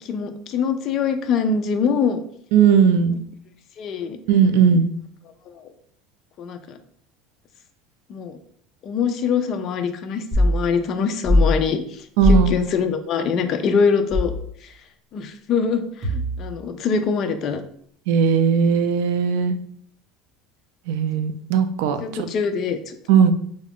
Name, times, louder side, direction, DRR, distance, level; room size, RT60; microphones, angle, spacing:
voice 1, 0.0-2.2 3.8-4.2 5.5-5.7 6.4-6.8 8.1-8.4 8.8-14.3 15.1-17.6 22.0-22.9, left 6 dB, 40° left, 7 dB, 0.4 m, -24 dB
voice 2, 2.5-3.2 4.3-4.9 12.2-12.6 18.1-19.6 20.9-22.3 23.1-23.3, right 7 dB, 75° right, 10 dB, 0.3 m, -18 dB
sound 1, 10.3-10.6 11.2-11.5 12.2-12.5 14.1-14.4 16.0-16.5, left 1 dB, 15° right, 1.4 m, -19 dB
3.7 x 2.4 x 3.5 m, 0.62 s
cardioid pair, 155°, 0 cm